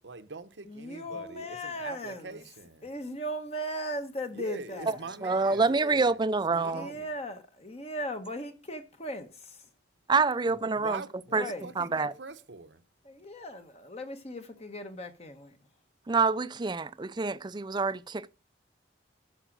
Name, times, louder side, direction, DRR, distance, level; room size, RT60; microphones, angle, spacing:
voice 1, 0.0-2.9 4.3-6.2 6.5-7.1 10.5-12.8, right 3 dB, 75° right, 0.9 m, -43 dB
voice 2, 0.7-2.4 2.8-5.1 6.6-9.6 11.3-11.7 13.0-15.6, equal, 35° left, 1.1 m, -38 dB
voice 3, 5.2-6.9 10.1-11.0 11.3-11.5 11.8-12.1 16.1-18.3, right 4 dB, 25° right, 0.4 m, -27 dB
13.0 x 5.0 x 6.1 m
head